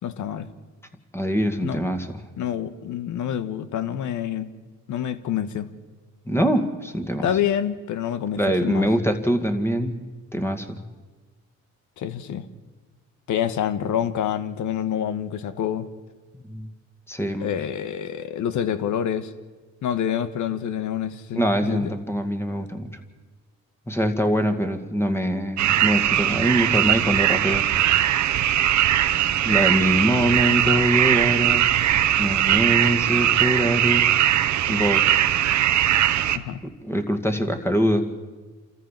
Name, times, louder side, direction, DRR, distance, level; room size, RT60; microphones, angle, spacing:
voice 1, 0.0-0.5 1.6-1.8 2.4-4.5 4.9-5.7 7.2-8.9 12.0-12.4 13.3-15.9 17.4-19.3 19.8-21.9 36.3-36.6, left 9 dB, 75° left, 13 dB, 1.4 m, -27 dB
voice 2, 1.1-2.1 6.3-7.3 8.4-10.0 10.3-10.8 16.5-16.7 17.1-17.5 21.3-22.9 23.9-27.6 29.4-31.6 32.2-34.0 34.7-35.0 36.8-38.1, equal, 10° left, 7 dB, 2.2 m, -23 dB
sound 1, 25.6-36.4, right 12 dB, 70° right, 1.0 m, -20 dB
28.0 x 14.0 x 7.5 m, 1.3 s
cardioid pair, 90°, 30 cm